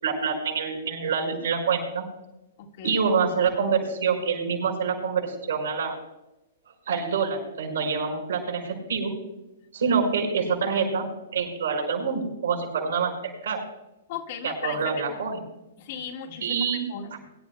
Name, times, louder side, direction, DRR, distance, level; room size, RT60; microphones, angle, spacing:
voice 1, 0.0-2.0 2.8-6.0 6.9-9.2 9.7-11.1 11.3-13.6 14.4-15.4 16.4-16.8, right 5 dB, 75° right, 0 dB, 5.6 m, -26 dB
voice 2, 2.6-3.0 14.1-15.3 15.8-17.1, left 8 dB, 55° left, 2 dB, 1.8 m, -37 dB
23.0 x 11.5 x 2.3 m, 0.95 s
hypercardioid pair, 120°, 0 cm